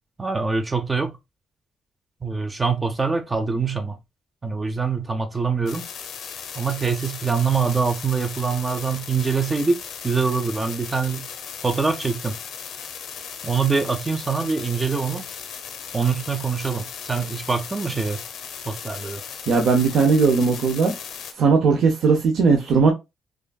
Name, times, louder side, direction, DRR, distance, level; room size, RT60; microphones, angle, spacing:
voice 1, 0.2-1.1 2.2-4.0 4.4-5.8 6.6-11.3 11.6-12.4 13.4-15.3 15.9-18.2 18.7-19.2, right 5 dB, 25° right, 0.5 m, -24 dB
sound 1, 5.7-21.3, left 7 dB, 75° left, 0.8 m, -37 dB
voice 2, 19.5-20.9 21.4-22.9, right 4 dB, 70° right, 0.7 m, -18 dB
4.9 x 2.5 x 2.3 m
cardioid pair, 90°, 0 cm